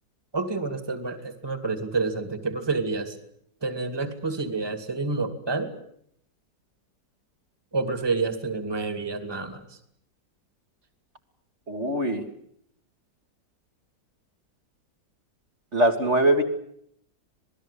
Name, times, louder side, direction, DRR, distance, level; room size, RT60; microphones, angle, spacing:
voice 1, 0.3-3.2 3.6-5.7 7.7-9.7, right 3 dB, 15° right, 8 dB, 2.4 m, -28 dB
voice 2, 11.7-12.2 15.7-16.4, right 1 dB, 40° right, 2 dB, 2.5 m, -22 dB
27.0 x 19.0 x 8.4 m, 0.70 s
omnidirectional pair, 1.9 m